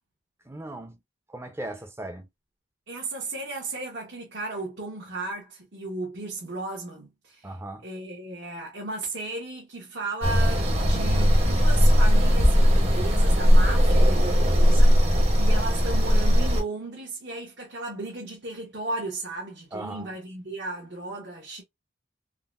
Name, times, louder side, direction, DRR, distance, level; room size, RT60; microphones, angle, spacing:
voice 1, 0.4-1.0 1.3-2.3 7.4-7.9 19.7-20.1, right 1 dB, 15° right, 0.5 m, -37 dB
voice 2, 2.9-7.5 7.8-21.6, right 2 dB, 65° right, 1.1 m, -35 dB
sound 1, 10.2-16.6, equal, 35° right, 0.9 m, -19 dB
3.7 x 2.0 x 2.4 m
head